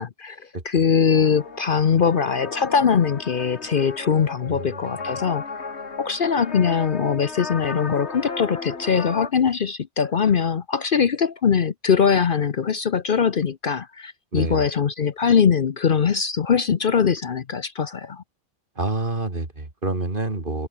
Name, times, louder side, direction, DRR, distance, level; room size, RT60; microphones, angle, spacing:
voice 1, 0.0-0.4 0.6-5.7 6.0-18.2, left 6 dB, 50° left, 0.9 m, -21 dB
sound 1, 1.1-9.3, left 4 dB, 65° left, 2.3 m, -35 dB
voice 2, 4.5-5.2 14.3-14.6 18.8-20.7, right 2 dB, 45° right, 3.5 m, -28 dB
omnidirectional pair, 1.2 m